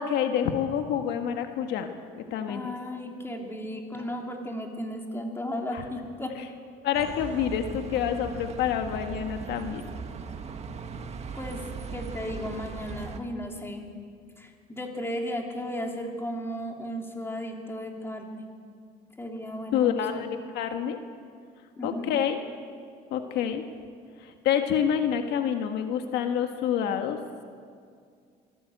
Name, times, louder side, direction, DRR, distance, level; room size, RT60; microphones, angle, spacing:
voice 1, 0.0-2.7 5.7-5.8 6.8-9.8 19.7-21.0 21.8-22.4 23.1-23.6 24.2-27.2, left 9 dB, 85° left, 6 dB, 1.5 m, -27 dB
voice 2, 2.5-6.4 11.3-11.6 11.9-13.9 14.4-18.4 19.2-20.3 21.8-22.1, equal, 15° left, 1 dB, 3.3 m, -35 dB
Bus, 6.9-13.2, right 5 dB, 40° right, 1.7 m, -38 dB
24.0 x 15.5 x 8.0 m, 2.2 s
cardioid pair, 110°, 17 cm